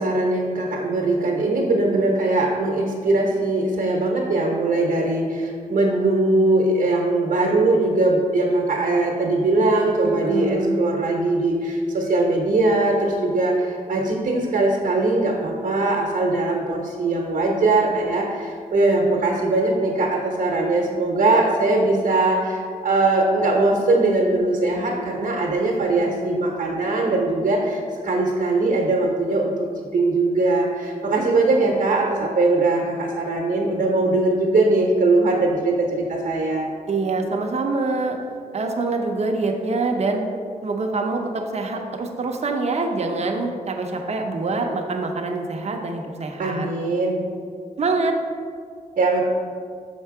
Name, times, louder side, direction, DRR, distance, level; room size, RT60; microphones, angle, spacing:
voice 1, 0.0-29.6 29.9-36.7 46.4-47.2 49.0-49.2, right 2 dB, 80° right, -2 dB, 0.9 m, -21 dB
voice 2, 10.0-10.8 36.9-38.2 38.5-40.2 40.6-46.7 47.8-48.2, right 3 dB, 50° right, 2 dB, 0.7 m, -25 dB
6.5 x 4.5 x 4.8 m, 2.1 s
wide cardioid pair, 140°, 14 cm